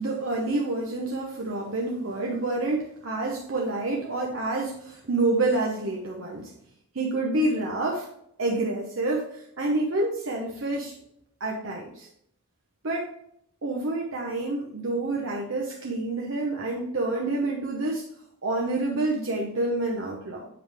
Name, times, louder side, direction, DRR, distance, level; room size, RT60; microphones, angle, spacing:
voice 1, 0.0-6.5 6.9-8.1 8.4-11.0 11.4-12.1 12.8-13.1 13.6-18.1 18.4-20.5, right 2 dB, 60° right, -1 dB, 0.9 m, -28 dB
7.8 x 4.9 x 3.4 m, 0.72 s
head